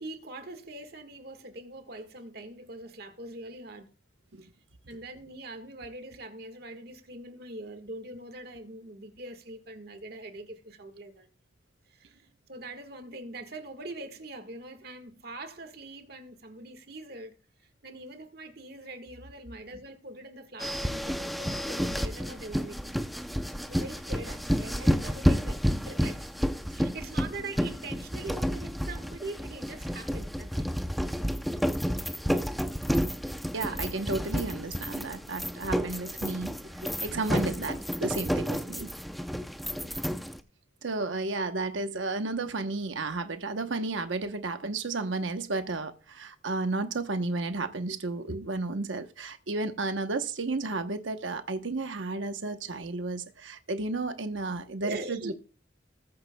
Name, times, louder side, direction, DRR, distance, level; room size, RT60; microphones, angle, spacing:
voice 1, 0.0-3.9 4.9-11.3 11.9-12.2 12.5-17.3 17.6-23.0 23.7-26.3 26.7-30.7 33.6-33.8 38.8-38.9 39.7-40.0 54.8-55.3, right 2 dB, 55° right, 1.6 m, -43 dB
sound 1, 20.6-40.4, equal, ahead, 0.6 m, -30 dB
voice 2, 33.5-38.9 40.8-55.3, right 3 dB, 90° right, 1.0 m, -33 dB
20.5 x 8.7 x 2.3 m
head